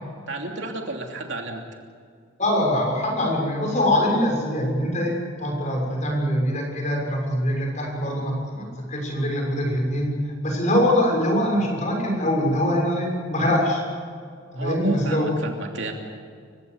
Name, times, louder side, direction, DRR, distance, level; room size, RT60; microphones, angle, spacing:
voice 1, 0.3-1.6 14.5-15.9, right 2 dB, 65° right, 2 dB, 3.0 m, -32 dB
voice 2, 2.4-10.2 10.4-13.8 14.5-15.3, left 1 dB, 35° left, 0 dB, 6.8 m, -23 dB
30.0 x 16.0 x 8.3 m, 2.1 s
head